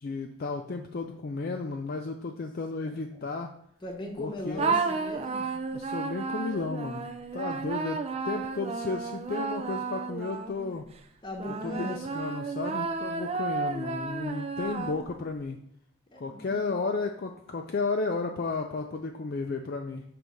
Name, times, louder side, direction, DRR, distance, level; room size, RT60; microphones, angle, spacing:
voice 1, 0.0-3.5 4.2-4.8 5.7-7.1 7.3-10.9 11.5-15.6 16.2-20.0, left 3 dB, 45° left, 3 dB, 0.4 m, -33 dB
voice 2, 3.8-5.5 11.2-12.1 16.1-16.7, left 1 dB, 20° left, 1 dB, 1.0 m, -39 dB
sound 1, 4.6-10.8 11.4-15.3, right 4 dB, 30° right, 0.4 m, -32 dB
6.2 x 3.3 x 5.3 m, 0.69 s
head